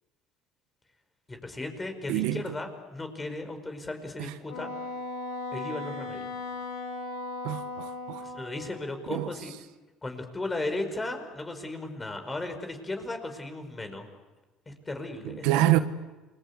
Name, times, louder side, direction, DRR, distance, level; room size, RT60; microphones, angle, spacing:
voice 1, 1.3-4.7 5.5-6.3 8.2-9.5 10.0-14.1 14.7-15.8, left 2 dB, 20° left, 5.2 m, -36 dB
voice 2, 2.1-2.4 4.2-4.3 7.4-8.2 9.1-9.3 15.2-15.8, right 15 dB, 80° right, 1.3 m, -26 dB
Wind instrument woodwind instrument, 4.5-8.9, left 2 dB, 85° left, 3.7 m, -37 dB
28.5 x 22.0 x 8.3 m
supercardioid pair, 95°, 0 cm